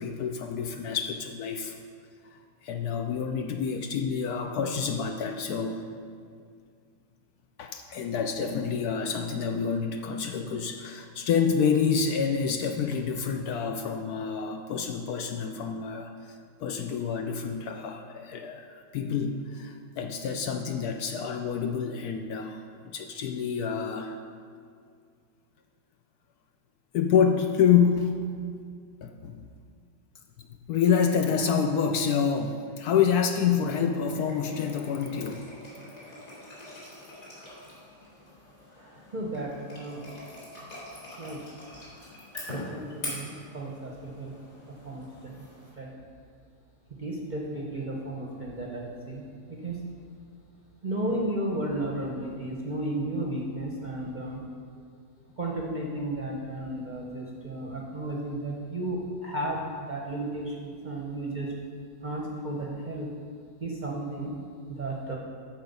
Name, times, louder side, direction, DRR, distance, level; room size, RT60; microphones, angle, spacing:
voice 1, 0.0-1.8 2.2-5.9 7.6-16.1 16.6-24.2 26.9-28.2 29.0-29.5 30.7-35.5, left 7 dB, 70° left, 5 dB, 1.0 m, -27 dB
sound 1, 33.0-45.7, left 1 dB, 50° left, 3.1 m, -44 dB
voice 2, 38.7-40.0 41.2-41.4 42.5-44.3 44.7-45.5 45.8-45.9 47.0-49.8 50.8-54.4 55.4-61.5 62.0-63.1 63.6-64.3 64.7-65.2, right 1 dB, 40° right, -2 dB, 0.7 m, -34 dB
13.0 x 4.4 x 5.4 m, 2.2 s
omnidirectional pair, 1.9 m